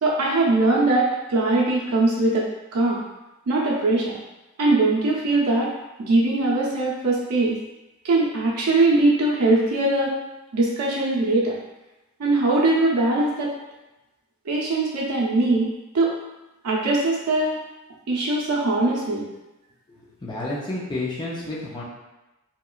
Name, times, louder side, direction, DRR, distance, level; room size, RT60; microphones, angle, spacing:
voice 1, 0.0-3.0 3.5-4.2 4.6-5.7 6.0-7.6 8.0-10.2 10.5-11.5 12.2-13.5 14.5-16.1 16.6-17.6 18.1-19.3, right 2 dB, 85° right, -4 dB, 0.6 m, -21 dB
voice 2, 19.9-21.8, left 2 dB, 20° left, -6 dB, 0.5 m, -31 dB
2.8 x 2.2 x 2.3 m, 1.0 s
head